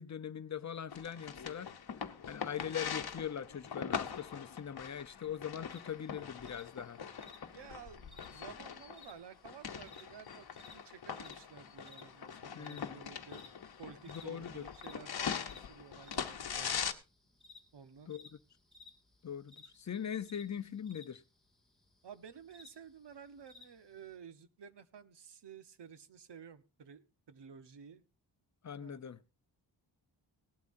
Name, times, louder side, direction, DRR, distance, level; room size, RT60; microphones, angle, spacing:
voice 1, 0.0-1.7 2.3-7.0 12.5-13.0 14.1-14.7 18.1-18.3 19.2-21.2 28.6-29.2, left 8 dB, 40° left, 0.6 m, -41 dB
sound 1, 0.9-16.9, left 7 dB, 55° left, 1.0 m, -42 dB
sound 2, 5.7-24.2, left 3 dB, ahead, 2.2 m, -60 dB
voice 2, 7.5-10.5 10.7-13.4 13.8-16.9 17.7-18.1 22.0-28.0 28.8-29.1, right 7 dB, 65° right, 1.1 m, -53 dB
18.0 x 12.0 x 2.6 m
wide cardioid pair, 170°, 45 cm